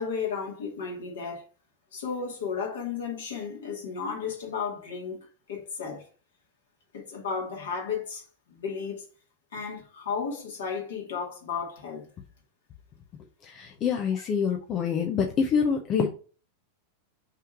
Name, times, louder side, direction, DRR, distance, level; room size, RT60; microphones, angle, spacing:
voice 1, 0.0-1.4 1.9-6.0 6.9-9.0 9.5-12.1, left 6 dB, 60° left, 2.4 m, -34 dB
voice 2, 13.4-16.1, left 6 dB, 30° left, 1.0 m, -26 dB
5.7 x 3.7 x 4.8 m
figure-of-eight pair, 90°, 0 cm